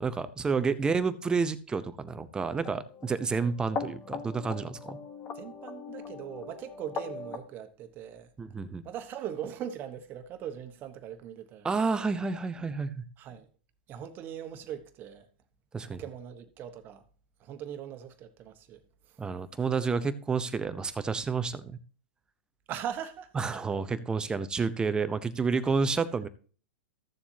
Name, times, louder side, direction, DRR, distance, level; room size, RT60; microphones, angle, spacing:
voice 1, 0.0-5.0 8.4-8.8 11.6-13.0 15.7-16.0 19.2-21.7 23.3-26.3, right 4 dB, 15° right, 0.7 m, -30 dB
sound 1, 2.4-7.4, left 5 dB, 30° left, 1.3 m, -40 dB
voice 2, 5.3-8.3 8.8-11.7 13.2-13.5 13.9-15.2 15.9-17.0 17.4-18.8 22.7-23.6, right 9 dB, 35° right, 1.3 m, -40 dB
14.0 x 7.1 x 2.8 m
hypercardioid pair, 115°, 6 cm